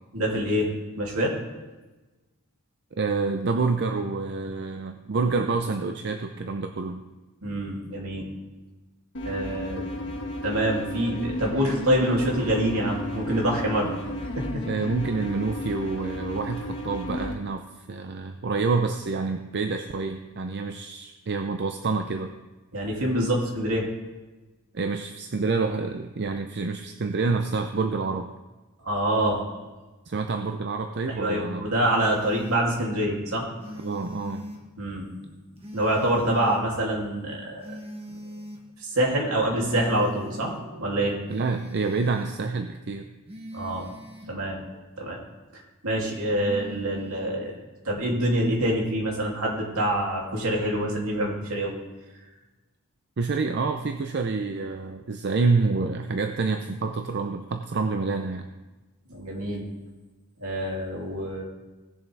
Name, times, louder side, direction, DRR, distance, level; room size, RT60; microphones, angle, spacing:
voice 1, 0.1-1.3 7.4-8.3 9.2-9.9 10.4-13.9 14.3-14.6 22.7-23.9 28.8-29.4 31.1-33.5 34.8-35.4 35.7-37.8 38.1-38.2 38.8-41.2 43.5-43.9 44.3-44.6 45.0-45.2 45.8-47.5 47.8-51.7 59.1-59.6 60.4-61.4, right 1 dB, 70° right, -2 dB, 2.8 m, -26 dB
voice 2, 3.0-7.0 14.7-22.3 24.7-28.3 30.1-31.7 33.8-34.5 41.3-43.1 53.2-58.5, right 4 dB, 50° right, 6 dB, 0.5 m, -27 dB
sound 1, 9.1-17.3, left 1 dB, 55° left, 1.8 m, -33 dB
sound 2, 32.0-32.6 33.6-34.6 35.6-36.6 37.6-38.6 39.6-40.6 41.3-42.3 43.3-44.3 46.3-47.3, equal, 25° right, 1.5 m, -40 dB
18.0 x 7.1 x 3.4 m, 1.2 s
head